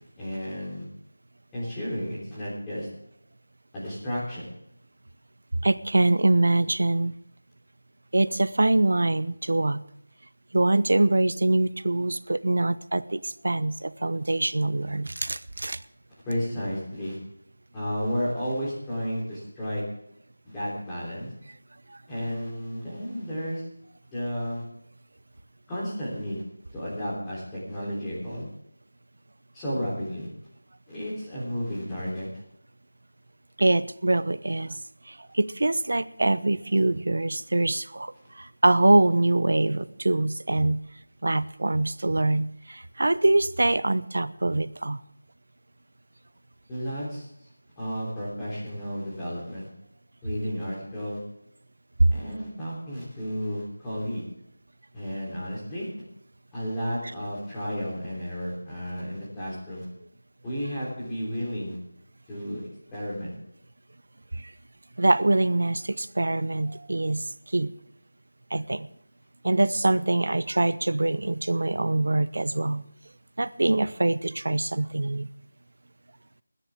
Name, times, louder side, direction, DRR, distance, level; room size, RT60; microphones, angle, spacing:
voice 1, 0.2-0.9 1.5-2.9 3.7-4.5 16.2-17.2 17.7-19.8 20.4-21.3 22.1-23.6 24.1-24.6 25.7-26.4 26.7-28.4 29.5-30.3 30.9-32.3 38.2-38.3 46.7-47.3 47.8-49.7 50.2-51.2 52.1-54.2 54.9-55.9 56.5-59.9 60.4-61.8 62.3-63.3, equal, 10° left, -8 dB, 3.4 m, -32 dB
voice 2, 5.6-7.1 8.1-9.8 10.5-15.8 21.9-22.0 33.6-34.8 35.1-40.8 41.2-45.0 52.0-52.1 64.3-64.5 65.0-67.3 67.5-67.7 68.5-68.9 69.4-72.8 73.4-75.3, right 2 dB, 65° right, 16 dB, 0.7 m, -24 dB
25.5 x 10.0 x 3.6 m, 0.75 s
figure-of-eight pair, 175°, 0 cm